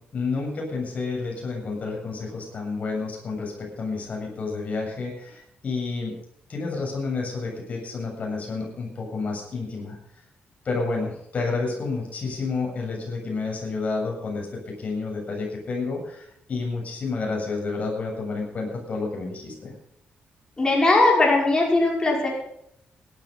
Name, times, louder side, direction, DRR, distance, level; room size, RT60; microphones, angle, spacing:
voice 1, 0.0-6.2 6.5-10.0 10.6-19.7, left 3 dB, 45° left, -1 dB, 7.5 m, -30 dB
voice 2, 20.6-22.3, left 2 dB, 20° left, -2 dB, 5.7 m, -19 dB
17.5 x 12.0 x 5.5 m, 0.72 s
cardioid pair, 120°, 4 cm